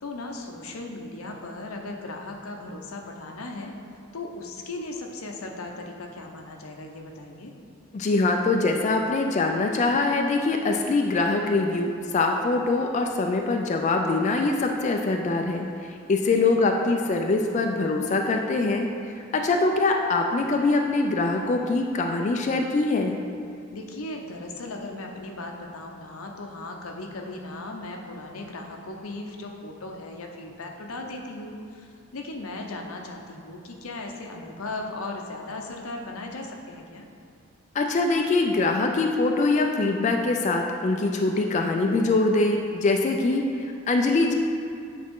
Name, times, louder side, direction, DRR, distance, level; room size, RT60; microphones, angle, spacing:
voice 1, 0.0-3.7 4.1-7.5 16.3-16.7 23.7-37.0, left 2 dB, 90° left, 2 dB, 0.7 m, -37 dB
voice 2, 7.9-23.2 37.7-44.3, left 3 dB, 35° left, 3 dB, 0.3 m, -23 dB
8.7 x 4.1 x 3.7 m, 2.4 s
head